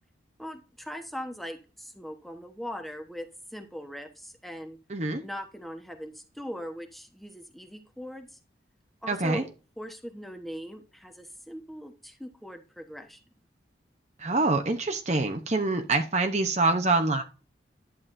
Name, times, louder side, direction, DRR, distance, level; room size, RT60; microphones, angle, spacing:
voice 1, 0.4-4.8 5.2-8.4 9.0-9.5 9.8-13.2, equal, ahead, 4 dB, 1.1 m, -40 dB
voice 2, 4.9-5.2 9.1-9.4 14.2-17.2, right 3 dB, 35° right, 5 dB, 0.8 m, -25 dB
11.0 x 9.1 x 2.6 m, 0.33 s
head